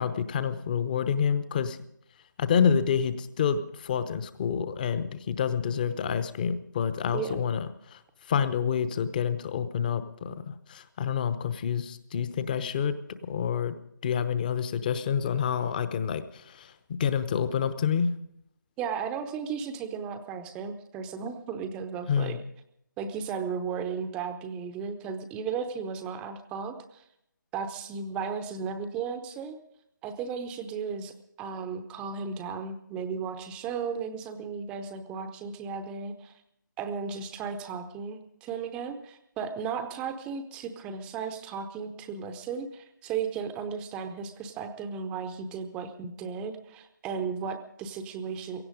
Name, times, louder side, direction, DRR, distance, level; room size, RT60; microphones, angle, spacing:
voice 1, 0.0-1.8 2.4-8.0 8.2-13.0 13.2-13.8 14.0-16.7 17.0-18.1 22.1-22.4, left 7 dB, 25° left, 13 dB, 0.9 m, -28 dB
voice 2, 18.8-22.4 23.0-27.0 27.5-29.6 30.0-36.3 36.8-48.6, right 6 dB, 10° right, 8 dB, 0.7 m, -35 dB
17.0 x 15.5 x 5.1 m, 0.77 s
figure-of-eight pair, 150°, 10 cm